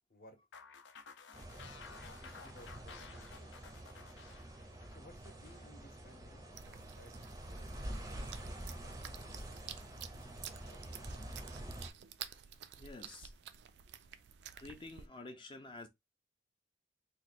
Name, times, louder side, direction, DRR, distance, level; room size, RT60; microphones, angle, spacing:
sound 1, 0.5-5.7, left 5 dB, 75° left, 0.5 m, -54 dB
sound 2, 1.3-11.9, right 1 dB, 20° right, 0.5 m, -47 dB
voice 1, 2.2-3.6 4.9-9.7 10.6-11.3, left 1 dB, 50° left, 0.8 m, -61 dB
sound 3, 6.5-15.1, right 9 dB, 65° right, 0.4 m, -51 dB
voice 2, 12.8-13.3 14.6-15.9, left 2 dB, 25° left, 0.5 m, -49 dB
3.1 x 2.2 x 4.1 m
head